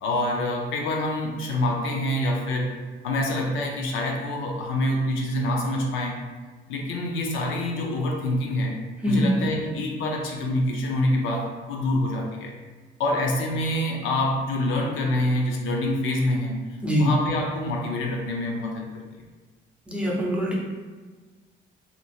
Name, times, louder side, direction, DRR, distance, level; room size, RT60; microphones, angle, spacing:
voice 1, 0.0-2.7 3.0-6.2 6.7-8.8 9.1-12.5 13.0-16.6 17.0-19.2, left 1 dB, 85° left, 0 dB, 0.5 m, -26 dB
voice 2, 19.9-20.5, equal, 5° right, -5 dB, 0.6 m, -23 dB
2.9 x 2.5 x 2.4 m, 1.4 s
cardioid pair, 115°, 20 cm